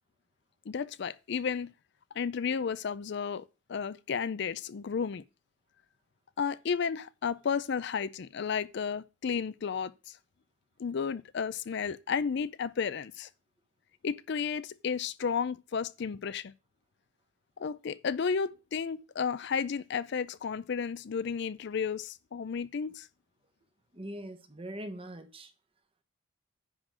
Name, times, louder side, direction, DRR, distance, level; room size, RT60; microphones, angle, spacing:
voice 1, 0.7-1.7 2.1-5.2 6.4-10.2 10.8-13.3 14.0-16.5 17.6-23.1, left 6 dB, 55° left, 0.4 m, -33 dB
voice 2, 23.9-25.5, right 1 dB, 25° right, 1.1 m, -42 dB
10.0 x 3.8 x 7.3 m
head